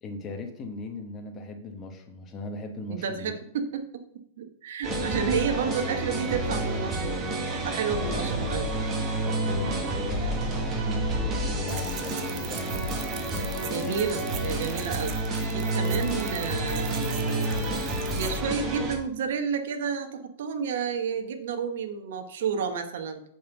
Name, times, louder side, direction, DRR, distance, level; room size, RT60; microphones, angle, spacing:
voice 1, 0.0-3.3 8.0-8.5 9.2-12.8 13.3-14.0, left 2 dB, 25° left, 2 dB, 1.2 m, -39 dB
voice 2, 2.9-4.0 4.4-7.2 7.6-8.7 13.6-15.2 15.5-17.7 18.1-23.2, right 6 dB, 70° right, 6 dB, 1.1 m, -31 dB
sound 1, 4.8-19.0, right 1 dB, 25° right, 1.8 m, -29 dB
sound 2, 11.7-18.4, right 9 dB, 45° right, 1.1 m, -41 dB
7.3 x 4.4 x 6.9 m, 0.69 s
hypercardioid pair, 140°, 0 cm